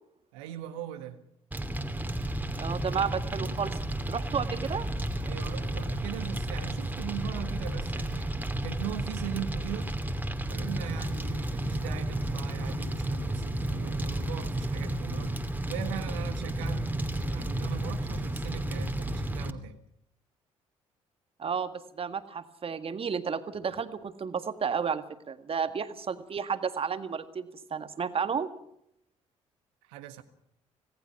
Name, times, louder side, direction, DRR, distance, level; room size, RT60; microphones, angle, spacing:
voice 1, 0.3-1.2 2.9-3.5 5.2-9.9 10.5-15.4 15.7-19.8 29.8-30.2, right 11 dB, 70° right, 1.7 m, -40 dB
Fire, 1.5-19.5, right 1 dB, 10° right, 2.6 m, -32 dB
voice 2, 2.6-3.8 4.1-4.9 21.4-28.5, right 6 dB, 35° right, 1.8 m, -32 dB
26.5 x 18.5 x 5.9 m
figure-of-eight pair, 50°, 16 cm